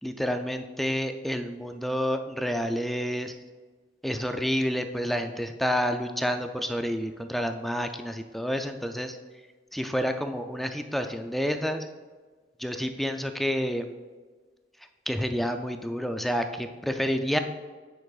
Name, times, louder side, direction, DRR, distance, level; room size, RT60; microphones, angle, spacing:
voice 1, 0.0-3.3 4.0-9.2 9.7-11.9 12.6-13.8 15.1-17.4, equal, ahead, 6 dB, 0.3 m, -29 dB
9.3 x 6.0 x 2.4 m, 1.4 s
head